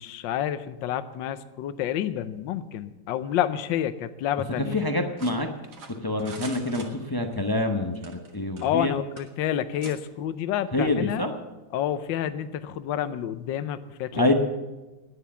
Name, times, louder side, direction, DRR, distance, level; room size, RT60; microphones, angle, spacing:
voice 1, 0.0-4.8 8.6-11.3 11.7-14.3, left 10 dB, 75° left, 12 dB, 1.4 m, -29 dB
voice 2, 4.6-5.5 6.0-8.9 10.7-11.3 14.1-14.3, left 2 dB, 30° left, 4 dB, 0.4 m, -26 dB
sound 1, 5.2-7.4 7.9-8.9 9.2-9.3 9.8-10.0, right 4 dB, 55° right, 2.1 m, -44 dB
12.5 x 9.9 x 7.1 m, 1.1 s
omnidirectional pair, 2.1 m